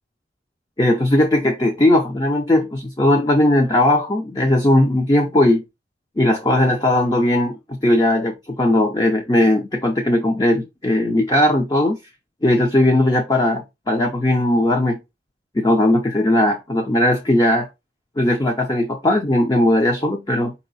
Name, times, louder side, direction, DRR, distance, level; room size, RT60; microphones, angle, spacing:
voice 1, 0.8-5.6 6.2-12.0 12.4-15.0 15.6-17.7 18.2-20.5, left 1 dB, 20° left, 0.6 m, -18 dB
4.5 x 2.9 x 4.0 m
head